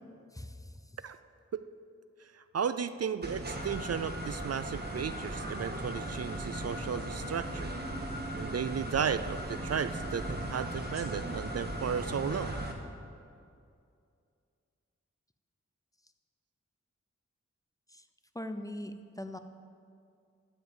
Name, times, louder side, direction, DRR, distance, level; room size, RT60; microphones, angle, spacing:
voice 1, 2.3-7.7 8.3-12.5, right 7 dB, 60° right, 12 dB, 0.4 m, -34 dB
sound 1, 3.2-12.7, right 1 dB, 35° right, 1.5 m, -37 dB
voice 2, 18.3-19.4, left 1 dB, 10° left, 8 dB, 0.6 m, -40 dB
12.5 x 5.3 x 7.9 m, 2.4 s
wide cardioid pair, 55°, 29 cm